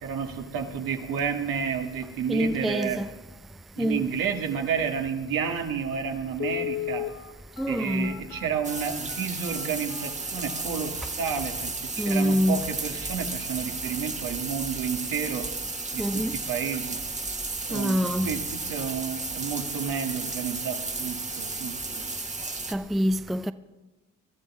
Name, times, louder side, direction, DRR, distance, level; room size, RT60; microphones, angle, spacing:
voice 1, 0.0-3.0 3.7-7.1 7.7-15.5 15.9-17.0 17.7-22.1, right 7 dB, 75° right, 1.8 m, -31 dB
voice 2, 2.3-3.1 3.8-4.1 7.6-8.2 12.0-12.6 16.0-16.3 17.7-18.3 22.7-23.5, equal, ahead, 0.4 m, -25 dB
Telephone, 5.6-5.7 6.3-11.2 11.7-11.8 12.2-12.4 12.7-13.0 13.3-13.4, left 11 dB, 50° left, 1.1 m, -36 dB
sound 1, 8.6-22.7, right 3 dB, 20° right, 1.3 m, -34 dB
22.0 x 12.5 x 3.6 m
supercardioid pair, 70°, 34 cm